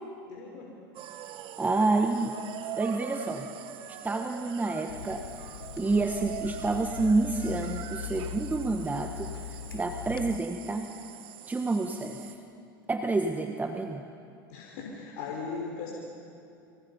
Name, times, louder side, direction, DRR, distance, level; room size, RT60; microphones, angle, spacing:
voice 1, 0.3-0.7 14.5-15.9, left 5 dB, 65° left, -2 dB, 4.8 m, -38 dB
sound 1, 0.9-12.3, right 10 dB, 50° right, 1.7 m, -43 dB
voice 2, 1.6-2.4 2.8-3.5 3.9-5.2 5.8-10.9 11.5-12.4 12.9-14.0, right 3 dB, 15° right, 5 dB, 1.4 m, -29 dB
Water tap faucet / Sink (filling or washing), 4.9-10.4, left 9 dB, 90° left, 0.6 m, -40 dB
30.0 x 25.0 x 5.6 m, 2.6 s
hypercardioid pair, 95°, 12 cm